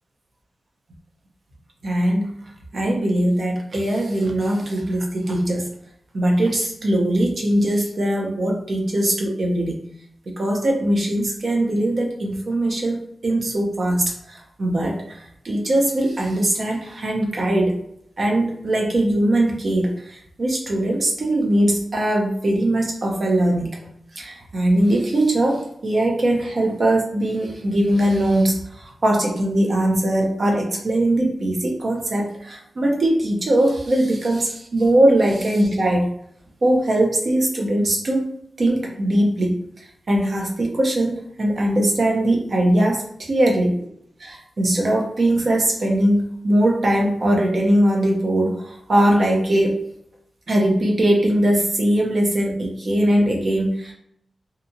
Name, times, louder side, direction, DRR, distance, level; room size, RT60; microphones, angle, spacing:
voice 1, 1.8-2.3 2.7-5.7 6.1-9.8 10.3-15.2 15.4-17.7 18.2-23.8 24.2-36.1 36.6-38.2 38.6-43.7 44.2-49.8 50.5-53.9, right 1 dB, 40° right, 0 dB, 0.6 m, -20 dB
2.8 x 2.3 x 2.6 m, 0.71 s
wide cardioid pair, 175°, 0 cm